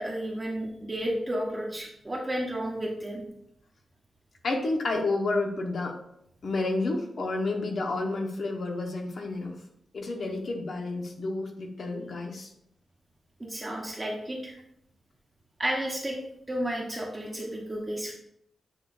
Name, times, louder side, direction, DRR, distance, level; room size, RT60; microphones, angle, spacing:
voice 1, 0.0-3.2 13.4-14.6 15.6-16.2 16.5-18.1, right 1 dB, 20° right, -3 dB, 1.1 m, -32 dB
voice 2, 4.4-6.0 6.4-9.6 9.9-12.5, left 2 dB, 60° left, 2 dB, 1.3 m, -30 dB
8.4 x 4.9 x 2.6 m, 0.74 s
wide cardioid pair, 115°, 0 cm